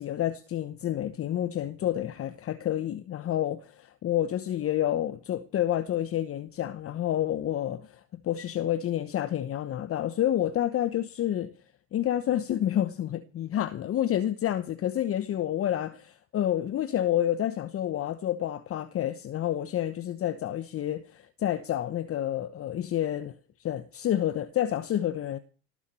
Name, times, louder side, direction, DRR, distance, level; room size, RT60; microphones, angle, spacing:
voice 1, 0.0-3.6 4.0-11.5 11.9-23.3 23.6-25.4, left 11 dB, 35° left, 1.0 m, -29 dB
18.5 x 7.4 x 8.6 m
hypercardioid pair, 80°, 38 cm